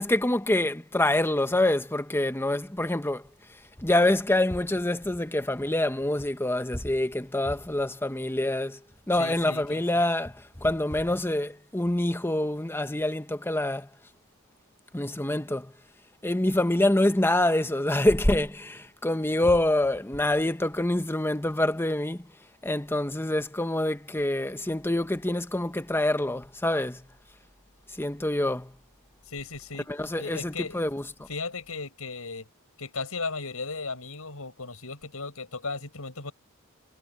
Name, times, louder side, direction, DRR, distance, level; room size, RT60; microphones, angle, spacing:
voice 1, 0.0-3.2 3.8-8.8 9.1-10.3 10.6-13.9 14.9-15.7 16.2-22.2 22.6-27.0 28.0-28.7 29.9-31.0, left 1 dB, 10° left, 1.1 m, -26 dB
voice 2, 9.2-10.0 29.3-29.9 30.2-30.8 31.3-32.5 32.8-36.3, left 4 dB, 75° left, 7.4 m, -36 dB
head